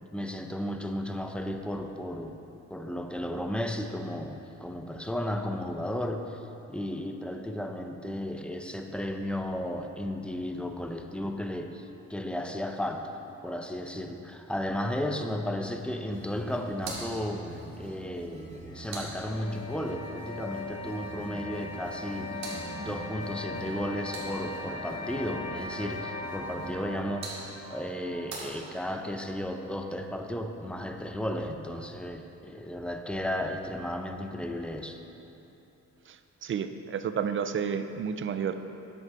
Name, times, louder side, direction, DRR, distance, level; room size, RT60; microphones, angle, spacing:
voice 1, 0.0-2.4 2.7-6.4 6.7-22.4 22.7-35.0, left 1 dB, 5° left, 5 dB, 0.6 m, -34 dB
sound 1, 16.1-26.8, right 2 dB, 25° right, 2.2 m, -46 dB
sound 2, 16.7-19.8 21.8-24.7 26.7-29.2, right 3 dB, 65° right, 2.2 m, -45 dB
sound 3, 18.7-29.7, left 2 dB, 50° left, 1.1 m, -40 dB
voice 2, 36.4-38.5, right 7 dB, 40° right, 10 dB, 0.5 m, -30 dB
9.6 x 8.1 x 4.3 m, 2.9 s
cardioid pair, 90°, 30 cm